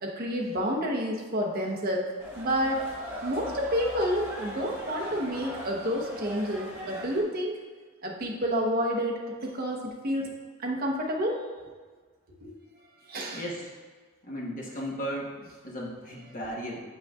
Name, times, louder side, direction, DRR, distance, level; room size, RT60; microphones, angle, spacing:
voice 1, 0.0-2.9 3.2-7.6 8.0-10.3 10.6-11.4 12.4-12.5 13.0-13.4, equal, 45° right, -1 dB, 0.9 m, -29 dB
sound 1, 2.2-7.2, equal, 10° right, 1.1 m, -39 dB
voice 2, 13.3-13.7 14.2-15.3 15.6-16.8, equal, 40° left, -3 dB, 1.1 m, -35 dB
7.7 x 5.3 x 2.4 m, 1.5 s
head